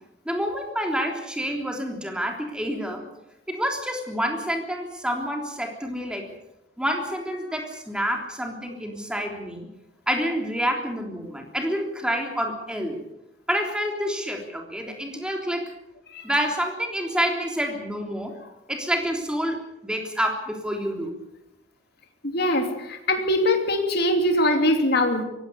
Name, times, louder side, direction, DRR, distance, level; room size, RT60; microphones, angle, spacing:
voice 1, 0.3-3.1 3.5-6.3 6.8-9.7 10.1-13.0 13.5-15.6 16.2-18.4 18.7-21.2, equal, 5° right, 2 dB, 3.4 m, -28 dB
voice 2, 22.2-25.2, left 1 dB, 55° left, 4 dB, 3.0 m, -22 dB
23.5 x 17.0 x 6.9 m, 0.88 s
head